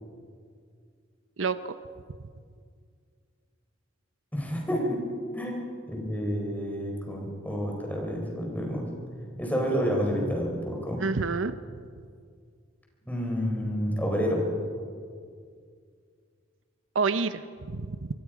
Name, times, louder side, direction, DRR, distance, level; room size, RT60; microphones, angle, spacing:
voice 1, 1.4-1.8 11.0-11.5 16.9-18.1, right 4 dB, 85° right, 12 dB, 0.8 m, -28 dB
voice 2, 4.3-5.0 5.3-8.9 9.4-11.0 13.1-14.4, equal, 10° left, 0 dB, 4.5 m, -29 dB
24.0 x 24.0 x 5.1 m, 2.1 s
head